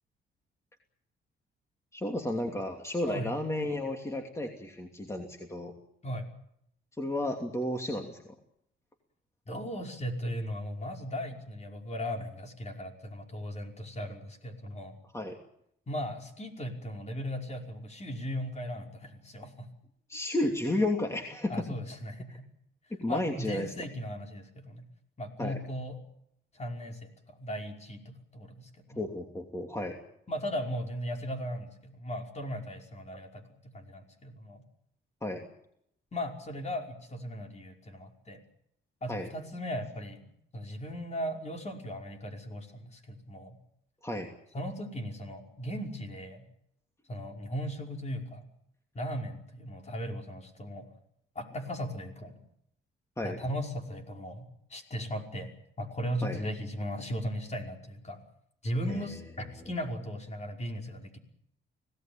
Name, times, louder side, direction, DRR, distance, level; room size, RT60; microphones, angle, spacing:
voice 1, 1.9-5.7 7.0-8.3 15.1-15.4 20.1-21.7 22.9-23.7 25.4-25.6 28.9-30.0 35.2-35.4 39.1-39.3 44.0-44.3 53.2-53.4 56.2-56.4 58.9-59.0, left 1 dB, 15° left, 3 dB, 2.9 m, -32 dB
voice 2, 9.5-15.0 15.9-19.7 21.5-22.5 23.1-24.9 25.2-26.0 26.5-29.1 30.3-34.6 36.1-38.4 39.0-43.6 44.5-46.4 47.1-48.5 48.9-50.9 51.4-52.4 53.2-55.5 55.8-58.2 58.6-61.2, equal, 35° left, 2 dB, 5.5 m, -37 dB
25.5 x 18.0 x 8.9 m, 0.76 s
cardioid pair, 90°, 20 cm